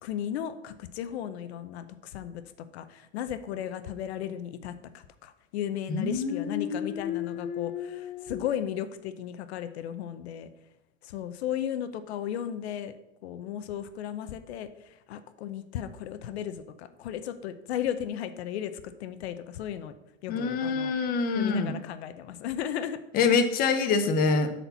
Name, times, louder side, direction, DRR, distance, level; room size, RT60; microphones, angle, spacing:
voice 1, 0.0-2.4 2.7-10.5 11.0-13.0 13.2-18.7 19.0-19.9 20.2-20.9 21.3-23.0, left 10 dB, 70° left, 11 dB, 0.8 m, -35 dB
voice 2, 5.9-8.4 20.3-21.7 23.1-24.5, left 5 dB, 25° left, 9 dB, 0.8 m, -27 dB
8.2 x 4.4 x 7.0 m, 0.89 s
supercardioid pair, 155°, 34 cm